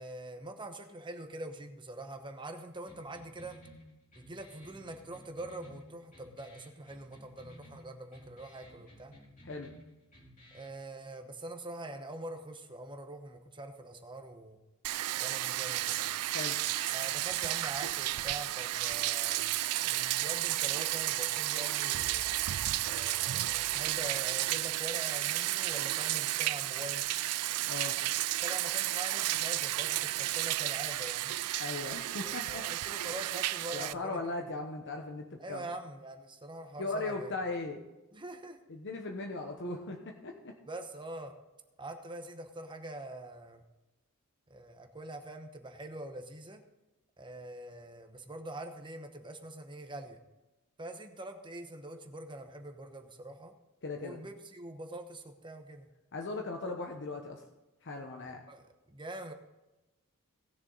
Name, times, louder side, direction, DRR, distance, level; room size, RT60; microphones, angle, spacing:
voice 1, 0.0-3.6 4.1-9.1 10.5-14.6 15.2-16.1 16.9-19.4 19.8-22.3 22.8-27.0 28.4-31.3 32.2-34.5 35.4-37.3 38.1-38.6 40.7-41.3 41.8-43.6 44.5-46.6 47.2-50.2 50.8-53.5 54.0-55.9 58.5-59.3, right 1 dB, 20° right, 6 dB, 1.0 m, -44 dB
sound 1, 2.9-10.8, equal, 35° left, 3.8 m, -56 dB
Bathtub (filling or washing), 14.8-33.9, right 15 dB, 80° right, 0.4 m, -32 dB
voice 2, 27.6-28.0 31.6-32.8 33.7-35.6 36.8-37.8 38.7-40.5 53.8-54.2 56.1-57.4 57.8-58.4, left 3 dB, 55° left, 3 dB, 1.1 m, -38 dB
18.5 x 7.0 x 4.0 m, 1.0 s
head